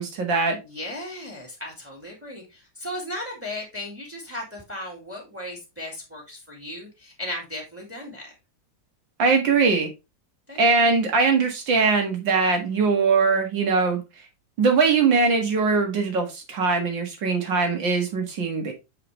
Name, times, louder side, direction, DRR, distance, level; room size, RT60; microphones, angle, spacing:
voice 1, 0.0-0.6 9.2-9.9 10.6-14.0 14.6-18.7, right 4 dB, 85° right, 2.5 m, -21 dB
voice 2, 0.7-8.3 10.5-10.6, left 1 dB, 5° right, 2.2 m, -36 dB
6.7 x 4.9 x 3.1 m
omnidirectional pair, 2.0 m